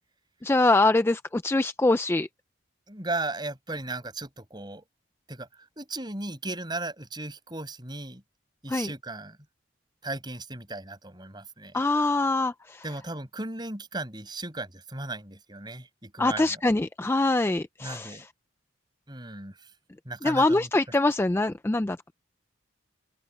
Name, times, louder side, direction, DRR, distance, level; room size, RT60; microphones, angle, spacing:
voice 1, 0.4-2.3 8.7-8.9 11.7-12.8 16.2-18.3 20.2-22.1, left 2 dB, 10° left, 0.3 m, -24 dB
voice 2, 2.9-4.8 5.3-5.5 5.8-8.2 8.6-9.4 10.0-11.8 12.8-16.6 17.8-18.3 19.1-19.5 20.0-20.7, right 2 dB, 20° right, 6.5 m, -36 dB
open air
head